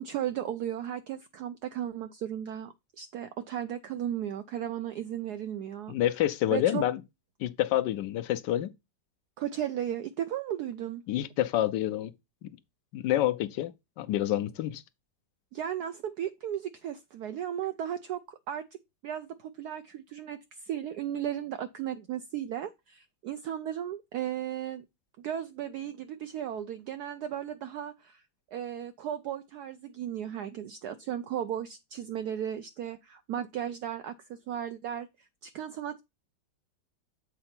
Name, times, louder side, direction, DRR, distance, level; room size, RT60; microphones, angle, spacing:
voice 1, 0.0-6.0 6.5-6.8 9.4-11.0 15.5-18.6 19.0-24.8 25.2-28.2 28.5-36.0, right 10 dB, 70° right, 1.0 m, -35 dB
voice 2, 5.9-7.0 7.4-8.7 11.1-12.1 12.4-12.5 12.9-13.7 14.0-14.8, left 13 dB, 75° left, 1.1 m, -28 dB
7.7 x 4.3 x 4.3 m
omnidirectional pair, 2.1 m